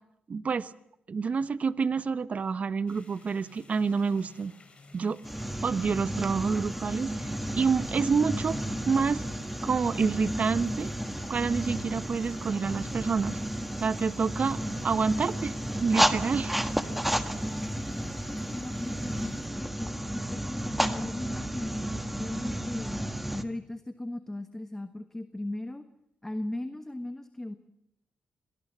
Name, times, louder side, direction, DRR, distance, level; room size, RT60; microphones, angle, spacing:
voice 1, 0.3-0.7 1.1-4.5 4.9-5.2 5.6-8.6 8.9-9.2 9.6-10.9 11.3-13.4 13.8-14.6 14.8-16.5, right 5 dB, 45° right, 15 dB, 0.9 m, -28 dB
sound 1, 2.9-19.4, left 3 dB, 35° left, 5.0 m, -55 dB
sound 2, 5.2-23.4, right 1 dB, 5° right, 1.5 m, -32 dB
voice 2, 17.6-25.9 26.2-27.5, left 1 dB, 10° left, 9 dB, 1.3 m, -38 dB
26.0 x 19.0 x 7.4 m, 0.81 s
cardioid pair, 85°, 3 cm